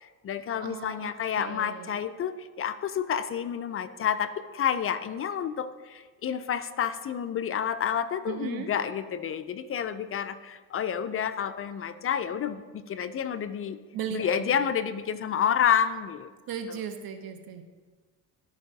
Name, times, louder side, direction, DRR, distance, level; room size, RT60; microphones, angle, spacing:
voice 1, 0.0-13.8 14.1-16.3, left 8 dB, 35° left, 12 dB, 0.4 m, -29 dB
voice 2, 0.6-1.1 1.4-2.0 8.3-8.7 13.9-14.5 16.5-17.6, right 8 dB, 55° right, 7 dB, 0.8 m, -37 dB
13.0 x 4.7 x 2.7 m, 1.4 s
supercardioid pair, 80°, 42 cm